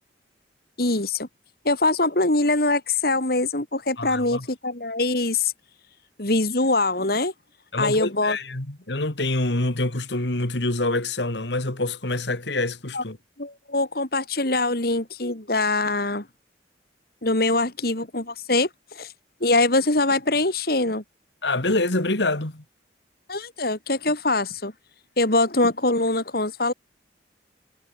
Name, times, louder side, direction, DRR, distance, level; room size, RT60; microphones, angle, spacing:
voice 1, 0.8-1.3 1.6-5.5 6.2-7.3 7.8-8.4 12.9-13.0 13.4-16.3 17.2-18.7 18.9-19.1 19.4-21.0 23.3-24.7 25.2-26.7, left 2 dB, 55° left, 3.3 m, -23 dB
voice 2, 4.0-4.5 7.7-13.2 21.4-22.6, left 2 dB, 70° left, 2.5 m, -26 dB
head